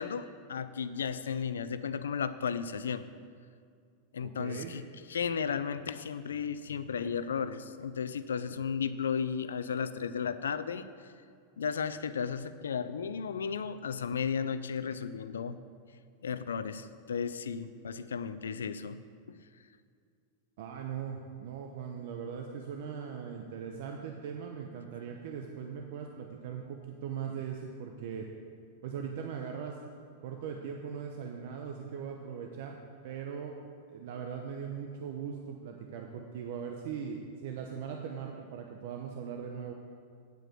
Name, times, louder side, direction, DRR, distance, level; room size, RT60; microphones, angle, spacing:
voice 1, 0.0-3.1 4.1-4.8 5.1-11.1 11.6-15.6 16.2-19.0 19.3-19.4, left 6 dB, 90° left, 13 dB, 0.4 m, -34 dB
voice 2, 4.2-4.8 20.6-28.3 28.8-29.8 30.2-32.8 33.0-33.6 33.9-39.7, right 7 dB, 65° right, 2 dB, 0.8 m, -40 dB
9.1 x 5.1 x 7.7 m, 2.2 s
hypercardioid pair, 110°, 0 cm